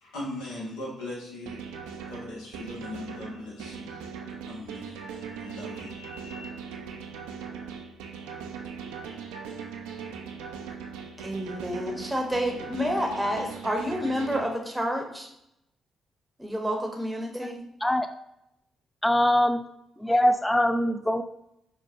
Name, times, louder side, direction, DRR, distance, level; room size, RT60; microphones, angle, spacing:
voice 1, 0.0-1.7 2.1-4.0 4.4-6.5, left 2 dB, 75° left, -4 dB, 0.9 m, -40 dB
sound 1, 1.5-14.4, right 6 dB, 75° right, 0.3 m, -39 dB
voice 2, 11.2-15.3 16.4-17.6, equal, 10° right, 2 dB, 0.8 m, -29 dB
voice 3, 19.0-19.6 20.0-21.2, left 1 dB, 10° left, 9 dB, 0.3 m, -22 dB
4.6 x 2.2 x 2.5 m, 0.80 s
hypercardioid pair, 40°, 0 cm